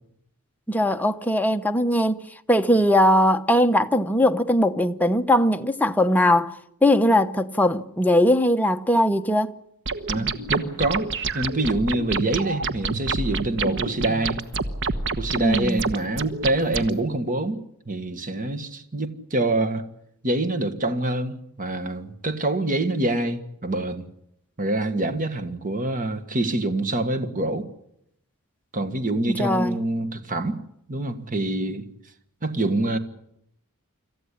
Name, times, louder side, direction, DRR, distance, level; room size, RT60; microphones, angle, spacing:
voice 1, 0.7-2.2 2.5-9.5 15.4-15.8 29.3-29.8, left 1 dB, 5° left, 0.9 m, -20 dB
sound 1, 9.9-16.9, right 4 dB, 55° right, 1.2 m, -28 dB
voice 2, 10.1-14.4 15.2-17.6 17.9-19.8 20.2-24.1 24.6-27.7 28.7-30.6 30.9-31.9 32.4-33.0, right 2 dB, 35° right, 1.6 m, -26 dB
26.5 x 14.5 x 9.9 m
head